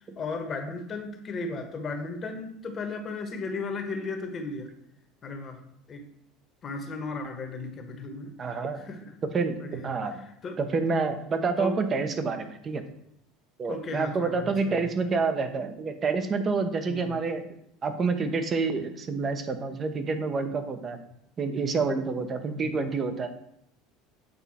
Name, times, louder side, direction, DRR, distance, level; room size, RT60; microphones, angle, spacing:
voice 1, 0.0-4.7 5.2-5.6 5.9-6.0 6.6-8.3 8.8-9.0 9.6-10.6 11.6-11.8 13.7-14.7 16.9-17.2 22.5-22.7, left 3 dB, 35° left, 5 dB, 1.3 m, -35 dB
voice 2, 8.4-8.8 9.2-10.3 10.6-12.8 13.6-17.4 17.8-21.0 21.4-23.3, right 4 dB, 35° right, 8 dB, 0.9 m, -28 dB
8.0 x 4.0 x 4.3 m, 0.73 s
hypercardioid pair, 75°, 0 cm